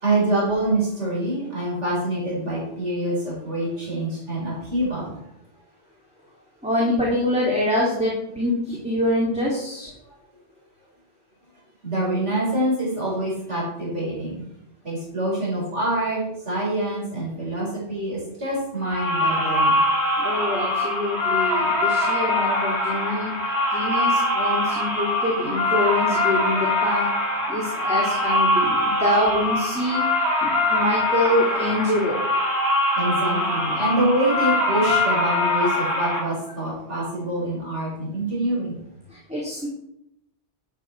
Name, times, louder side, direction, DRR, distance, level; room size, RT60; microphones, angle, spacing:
voice 1, 0.0-5.2 11.8-14.4 14.8-19.8 32.9-38.8, right 1 dB, 90° right, -5 dB, 5.1 m, -25 dB
voice 2, 6.6-9.9 20.2-23.3 23.7-27.1 27.5-30.0 30.4-32.2 39.3-39.7, left 1 dB, 5° right, -5 dB, 2.7 m, -25 dB
sound 1, 18.8-36.2, left 1 dB, 25° left, 4.6 m, -23 dB
12.0 x 9.3 x 4.6 m, 0.79 s
omnidirectional pair, 1.2 m